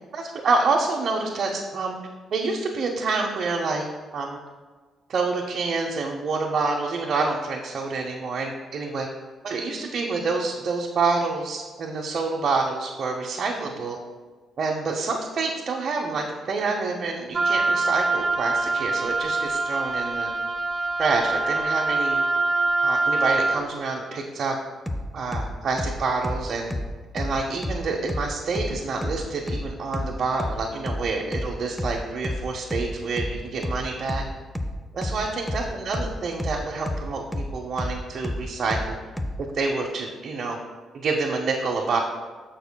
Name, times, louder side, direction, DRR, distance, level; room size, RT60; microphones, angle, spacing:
voice 1, 0.1-2.0 2.3-3.8 4.1-4.4 5.1-9.1 9.4-14.0 14.6-20.3 21.0-22.2 22.8-24.6 25.1-26.7 27.1-34.2 34.9-39.0 39.5-40.6 40.9-42.0, right 4 dB, 55° right, -1 dB, 0.8 m, -27 dB
Wind instrument woodwind instrument, 17.3-23.6, right 3 dB, 35° right, 1.2 m, -24 dB
sound 1, 24.9-39.4, left 1 dB, 5° left, 0.6 m, -30 dB
12.0 x 5.6 x 2.2 m, 1.4 s
cardioid pair, 90°, 0 cm